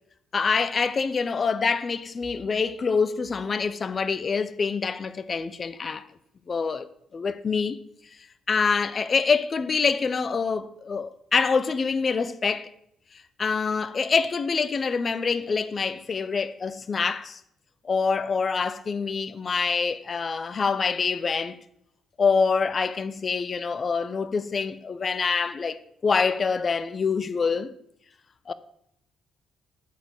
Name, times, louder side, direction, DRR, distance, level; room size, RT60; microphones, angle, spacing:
voice 1, 0.3-6.0 6.5-7.8 8.5-12.7 13.1-17.4 17.8-21.6 22.2-27.7 28.5-28.6, left 5 dB, 40° left, 0.7 m, -26 dB
13.0 x 4.5 x 7.9 m
cardioid pair, 90°, 0 cm